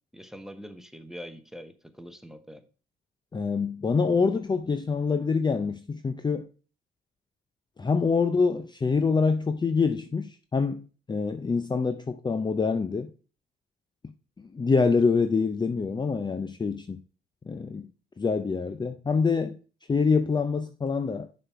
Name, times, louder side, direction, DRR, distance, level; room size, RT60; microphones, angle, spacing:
voice 1, 0.1-2.6, equal, ahead, 0.9 m, -43 dB
voice 2, 3.3-6.5 7.8-13.1 14.0-17.0 17.5-17.9 18.2-19.6 19.9-21.3, left 4 dB, 20° left, 0.5 m, -26 dB
6.5 x 4.3 x 4.6 m
cardioid pair, 90°, 20 cm